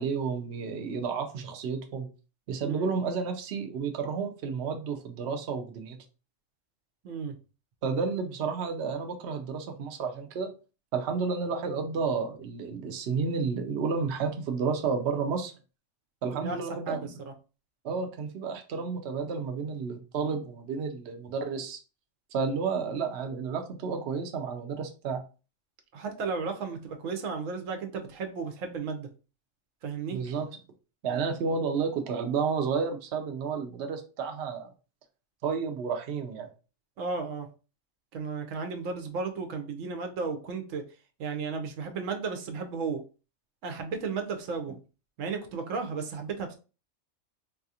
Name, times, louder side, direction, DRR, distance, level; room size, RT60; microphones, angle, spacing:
voice 1, 0.0-2.1 2.5-6.0 7.8-10.5 10.9-15.5 16.2-17.2 17.8-21.8 22.3-25.2 30.1-30.5 31.0-34.7 35.4-36.5, right 5 dB, 65° right, 4 dB, 0.8 m, -31 dB
voice 2, 25.9-29.1 29.8-30.2 37.0-37.5 38.1-40.8 41.2-43.0 43.6-44.7 45.2-46.6, right 5 dB, 85° right, 5 dB, 1.1 m, -34 dB
4.0 x 2.4 x 2.7 m, 0.33 s
omnidirectional pair, 1.3 m